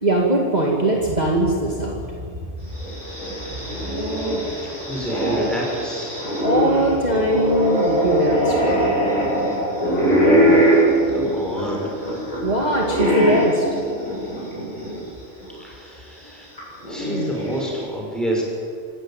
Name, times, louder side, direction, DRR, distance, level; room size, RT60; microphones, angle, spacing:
voice 1, 0.0-2.7 6.4-8.7 12.4-13.7, right 1 dB, 35° right, -1 dB, 2.4 m, -21 dB
sound 1, 2.7-15.0 15.4-15.5 16.6-17.8, equal, 30° left, 8.0 m, -21 dB
voice 2, 4.7-6.3 10.6-10.8 11.1-12.2 15.6-16.5 16.9-18.4, equal, ahead, -2 dB, 6.1 m, -29 dB
26.0 x 15.0 x 9.2 m, 2.4 s
omnidirectional pair, 1.3 m